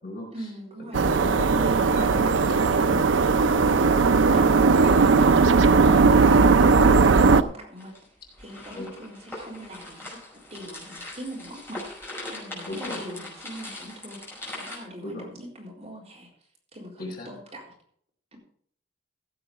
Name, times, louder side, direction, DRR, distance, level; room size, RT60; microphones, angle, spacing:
voice 1, 0.3-1.0 1.3-3.1 3.3-4.7 6.4-7.9 8.4-10.2 10.5-11.8 12.3-14.2 14.5-16.3 16.7-17.6, equal, 35° right, -3 dB, 4.0 m, -42 dB
voice 2, 0.9-2.3 2.9-3.0 4.8-5.3 5.6-5.8 8.7-8.9 12.7-13.0 15.0-15.3 17.0-17.3, left 1 dB, 55° left, 0 dB, 4.5 m, -35 dB
sound 1, 0.9-7.4, right 4 dB, 85° right, 0.5 m, -18 dB
sound 2, 7.8-14.8, left 2 dB, 15° left, 5.4 m, -40 dB
15.0 x 7.9 x 4.9 m, 0.62 s
head